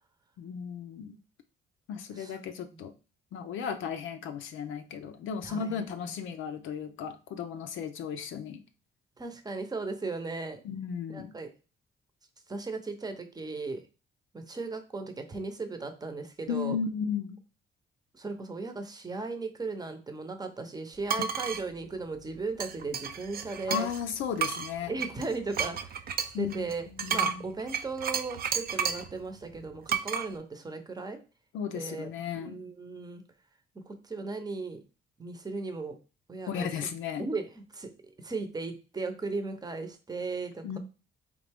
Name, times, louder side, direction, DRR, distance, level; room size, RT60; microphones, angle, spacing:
voice 1, 0.4-1.2 1.9-2.9 3.3-8.6 10.6-11.3 16.5-17.4 23.7-24.9 26.3-27.5 31.5-32.6 36.5-37.2 40.6-40.8, left 7 dB, 80° left, 5 dB, 0.5 m, -35 dB
voice 2, 5.4-6.1 9.2-10.6 11.1-11.5 12.5-13.8 14.3-16.8 18.1-23.9 24.9-31.2 31.7-33.2 33.9-34.8 35.2-35.9 36.3-36.9 37.2-40.8, right 3 dB, 20° right, 7 dB, 0.8 m, -37 dB
sound 1, 21.1-21.6 22.6-24.0 24.4-29.1 29.9-30.3, right 7 dB, 50° right, 0.5 m, -32 dB
3.8 x 3.2 x 3.4 m, 0.33 s
cardioid pair, 90°, 20 cm